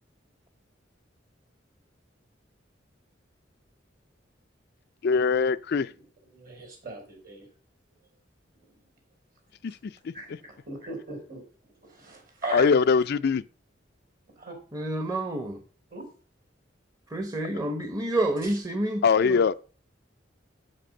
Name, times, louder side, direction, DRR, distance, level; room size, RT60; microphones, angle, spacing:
voice 1, 5.0-5.9 9.6-9.8 10.0-10.1 12.5-13.4 19.0-19.5, left 5 dB, 60° left, 0.4 m, -22 dB
voice 2, 6.3-7.5 10.1-11.4 11.8-12.7 14.4-14.5 15.9-16.1 18.4-18.6, right 2 dB, 50° right, 4.4 m, -38 dB
voice 3, 14.7-15.6 17.1-19.4, right 1 dB, 20° right, 1.0 m, -29 dB
7.8 x 7.6 x 6.3 m
head